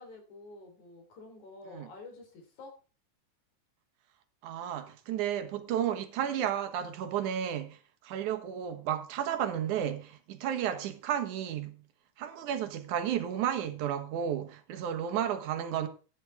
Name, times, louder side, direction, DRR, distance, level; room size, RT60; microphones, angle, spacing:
voice 1, 0.0-2.8, left 3 dB, 75° left, 5.0 m, -49 dB
voice 2, 4.4-7.8 8.0-11.8 12.2-15.9, right 9 dB, 75° right, 2.7 m, -32 dB
14.5 x 10.0 x 3.5 m
omnidirectional pair, 3.5 m